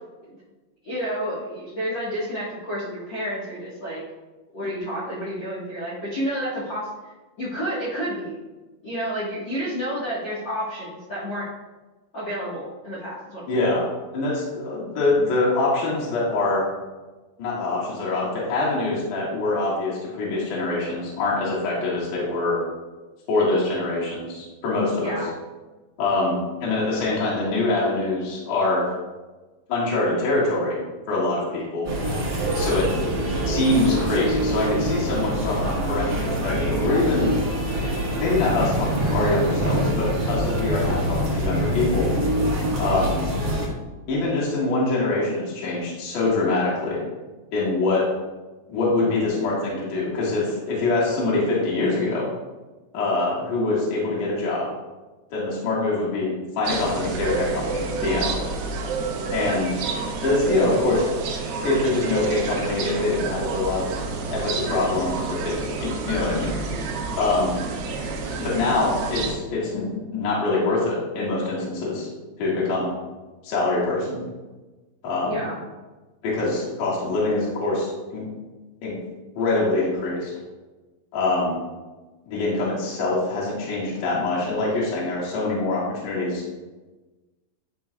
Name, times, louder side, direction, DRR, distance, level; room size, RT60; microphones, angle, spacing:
voice 1, 0.8-4.0 4.5-6.9 7.4-8.4 8.8-11.5 12.1-13.4 25.0-25.2 75.2-75.6, equal, 85° left, -10 dB, 1.0 m, -30 dB
voice 2, 13.5-13.8 14.1-16.7 17.4-22.6 23.3-25.2 26.0-28.8 29.7-30.8 31.1-31.9 32.5-32.9 33.5-37.3 38.2-42.1 42.8-43.3 44.1-47.0 47.5-48.0 48.7-52.3 52.9-54.7 55.3-58.3 59.3-59.8 60.2-61.1 61.6-63.9 64.2-66.5 67.2-67.5 68.3-72.1 72.4-73.0 73.4-74.2 75.0-75.5 76.2-78.3 78.8-79.0 79.4-80.3 81.1-81.6 82.3-86.4, left 2 dB, 60° left, -6 dB, 2.9 m, -24 dB
sound 1, 31.8-43.7, right 1 dB, 85° right, 0.9 m, -25 dB
sound 2, 56.6-69.3, right 4 dB, 70° right, 2.4 m, -29 dB
11.0 x 5.2 x 2.3 m, 1.2 s
omnidirectional pair, 4.8 m